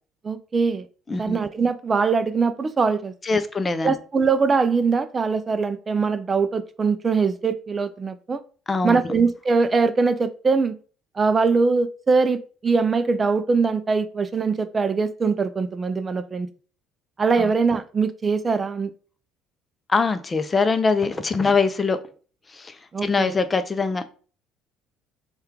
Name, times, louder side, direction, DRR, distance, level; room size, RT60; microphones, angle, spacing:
voice 1, 0.2-0.9 1.2-3.1 3.8-8.4 8.8-10.8 11.2-16.5 17.2-18.9 22.9-23.4, right 4 dB, 35° right, 0.4 m, -22 dB
voice 2, 1.1-1.4 3.2-3.9 8.7-9.0 17.4-17.5 19.9-22.0 22.5-24.0, left 4 dB, 30° left, 0.5 m, -23 dB
4.2 x 2.3 x 3.5 m
hypercardioid pair, 60°, 0 cm